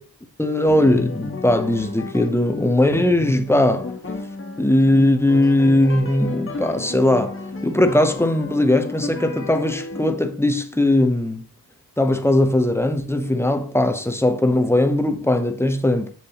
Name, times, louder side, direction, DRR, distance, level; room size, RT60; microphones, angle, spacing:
voice 1, 0.4-3.9 4.6-7.4 7.6-11.5 12.0-16.1, left 1 dB, 5° left, 0.7 m, -19 dB
sound 1, 0.7-10.1, left 3 dB, 30° left, 1.5 m, -33 dB
7.4 x 6.8 x 2.9 m
wide cardioid pair, 125°, 42 cm